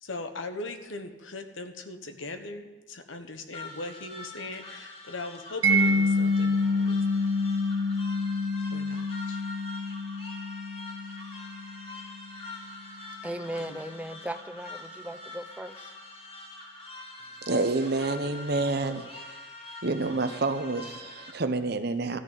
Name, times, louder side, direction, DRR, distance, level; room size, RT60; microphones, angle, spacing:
voice 1, 0.0-7.3 8.7-9.4 13.6-13.8, left 2 dB, 90° left, 7 dB, 1.2 m, -40 dB
sound 1, 3.5-21.3, left 2 dB, 30° left, 1.9 m, -44 dB
Mallet percussion, 5.6-12.4, left 1 dB, 90° right, 1.1 m, -27 dB
voice 2, 13.2-15.9, right 1 dB, 5° right, 10 dB, 0.5 m, -37 dB
voice 3, 17.5-19.4 19.8-22.2, right 3 dB, 55° right, 9 dB, 0.9 m, -28 dB
14.0 x 6.5 x 9.0 m, 1.3 s
head